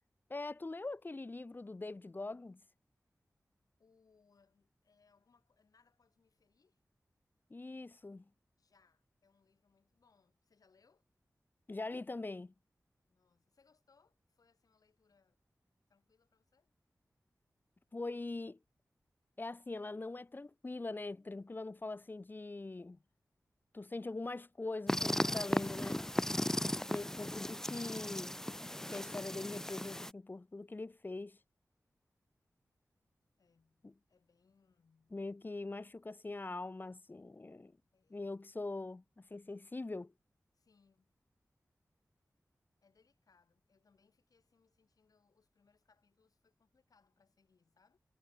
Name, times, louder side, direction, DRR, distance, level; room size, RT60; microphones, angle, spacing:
voice 1, 0.3-2.6 7.5-8.2 11.7-12.5 17.9-18.6 19.4-23.0 23.7-26.0 26.9-28.3 28.9-31.4 33.8-33.9 35.1-37.7 38.1-40.1, left 2 dB, 35° left, 0.9 m, -42 dB
voice 2, 3.8-6.8 8.6-11.0 13.1-15.4 15.9-16.7 33.4-35.2 37.9-38.5 40.5-41.1 42.8-48.0, left 5 dB, 85° left, 5.3 m, -73 dB
sound 1, 24.9-30.1, left 1 dB, 10° left, 0.3 m, -36 dB
wide cardioid pair, 100°, 6 cm